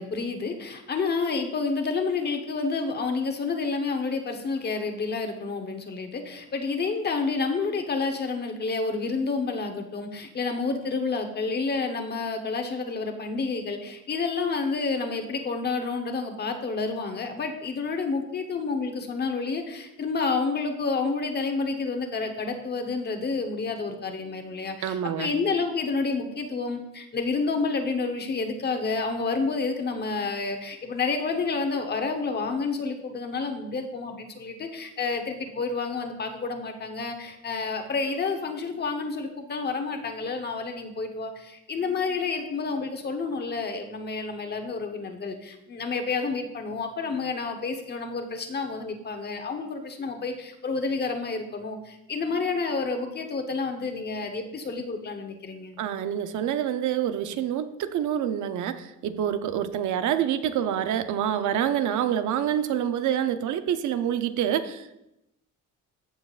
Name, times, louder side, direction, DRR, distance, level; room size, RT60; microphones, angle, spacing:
voice 1, 0.0-55.8, left 4 dB, 35° left, 5 dB, 1.0 m, -29 dB
voice 2, 24.8-25.3 55.8-65.0, right 10 dB, 75° right, 10 dB, 0.7 m, -27 dB
14.5 x 7.2 x 2.5 m, 0.88 s
cardioid pair, 150°, 30 cm